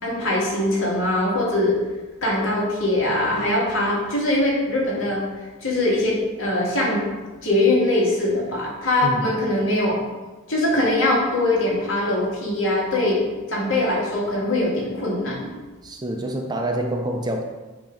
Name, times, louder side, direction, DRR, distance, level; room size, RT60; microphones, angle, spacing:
voice 1, 0.0-1.8 2.2-5.2 5.6-7.0 7.4-10.0 10.5-13.2 13.5-15.5, left 1 dB, 70° left, -4 dB, 2.0 m, -22 dB
voice 2, 9.0-9.4 15.8-17.4, right 1 dB, 20° right, 4 dB, 0.5 m, -27 dB
7.9 x 2.9 x 5.1 m, 1.2 s
head